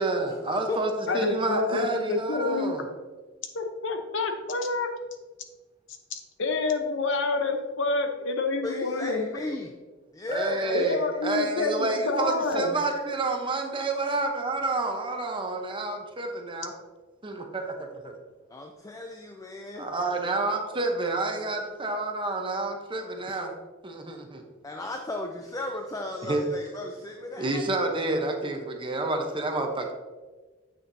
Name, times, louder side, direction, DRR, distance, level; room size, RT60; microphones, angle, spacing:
voice 1, 0.0-2.8 10.3-16.7 17.2-18.1 19.8-23.5 23.8-24.4 26.2-26.4 27.4-29.9, right 2 dB, 25° right, 3 dB, 0.8 m, -29 dB
voice 2, 1.1-2.9 3.5-4.9 6.1-9.3 10.7-12.8, left 3 dB, 65° left, 5 dB, 0.8 m, -28 dB
voice 3, 8.6-9.8 10.1-11.1 18.5-19.9 23.3-23.4 24.6-27.7, left 2 dB, 15° left, 3 dB, 0.4 m, -35 dB
7.8 x 6.4 x 2.7 m, 1.3 s
head